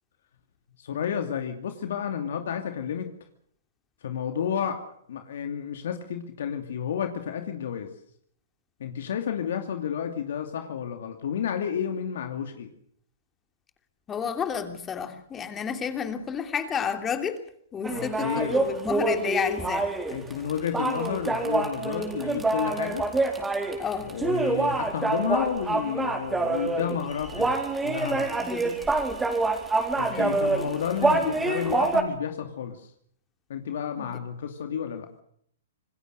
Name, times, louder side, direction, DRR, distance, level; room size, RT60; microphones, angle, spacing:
voice 1, 0.8-3.1 4.0-4.8 5.1-7.9 8.8-12.7 17.9-18.6 20.1-23.1 24.0-28.3 29.9-32.9 33.5-35.1, left 8 dB, 65° left, 5 dB, 2.7 m, -31 dB
voice 2, 14.1-17.4 17.7-19.9 23.8-24.1 28.4-28.8 30.1-30.4 34.0-34.2, left 7 dB, 20° left, 6 dB, 3.0 m, -31 dB
sound 1, 17.8-32.0, right 3 dB, 10° right, 4.2 m, -26 dB
27.0 x 20.0 x 6.7 m, 0.67 s
hypercardioid pair, 130°, 0 cm